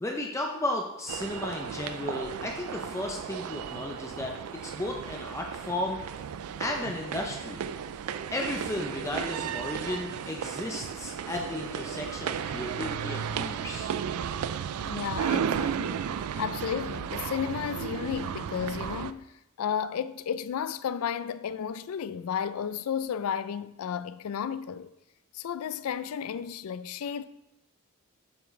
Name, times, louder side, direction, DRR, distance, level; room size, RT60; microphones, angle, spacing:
voice 1, 0.0-6.0 6.6-7.6 8.3-13.9, left 1 dB, 15° left, 0.5 m, -34 dB
sound 1, 1.1-19.1, right 8 dB, 80° right, 0.3 m, -34 dB
voice 2, 14.8-16.0 16.4-19.3 19.6-24.9 25.3-27.2, left 8 dB, 75° left, 0.3 m, -33 dB
7.2 x 5.8 x 3.1 m
head